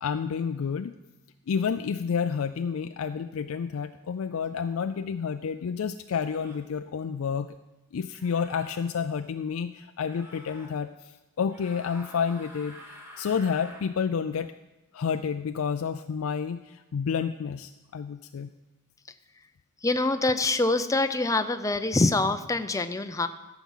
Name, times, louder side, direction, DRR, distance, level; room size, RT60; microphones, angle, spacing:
voice 1, 0.0-0.9 1.5-7.5 7.9-14.5 14.9-18.5, left 6 dB, 75° left, 8 dB, 0.4 m, -30 dB
sound 1, 4.8-5.0 6.2-6.7 8.1-8.8 10.0-10.7 11.5-13.9, equal, 10° right, 1.9 m, -48 dB
voice 2, 19.8-23.3, left 2 dB, 15° left, 9 dB, 0.5 m, -25 dB
14.0 x 6.0 x 7.2 m, 1.0 s
head